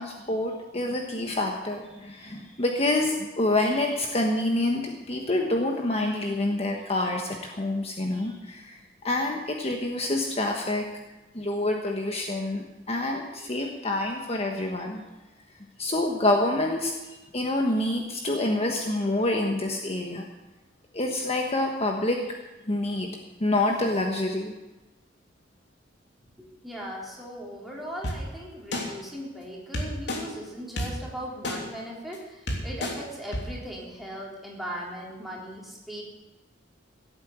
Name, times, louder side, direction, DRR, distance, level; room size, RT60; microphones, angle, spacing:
voice 1, 0.0-8.8 9.0-10.8 11.3-15.0 15.8-16.9 17.3-20.2 20.9-22.2 22.7-23.1 23.4-24.5, left 2 dB, 35° left, 2 dB, 1.3 m, -27 dB
voice 2, 26.4-36.0, equal, ahead, -4 dB, 3.8 m, -38 dB
sound 1, 28.0-28.1 28.7-28.8 29.7-30.2 30.8-30.9 31.4-31.6 32.1-32.2 32.5-32.9 33.3-33.4, left 1 dB, 70° left, 3.1 m, -29 dB
16.5 x 8.8 x 8.0 m, 1.1 s
head